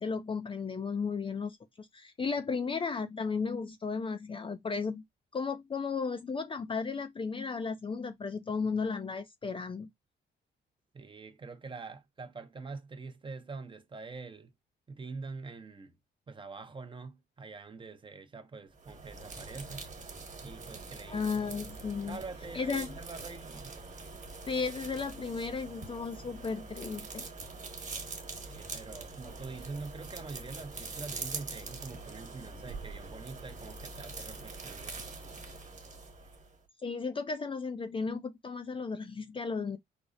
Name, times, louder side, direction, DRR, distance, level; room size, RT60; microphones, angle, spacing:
voice 1, 0.0-5.0 5.3-9.9 21.1-22.2 22.5-22.9 24.5-27.2 36.8-39.8, left 5 dB, 25° left, 0.4 m, -34 dB
voice 2, 10.9-14.5 14.9-15.9 16.3-19.9 20.4-21.6 22.1-23.8 28.5-35.2, right 4 dB, 25° right, 0.6 m, -45 dB
sound 1, 18.7-36.6, right 3 dB, 40° right, 1.2 m, -44 dB
4.9 x 2.0 x 2.5 m
cardioid pair, 90°, 20 cm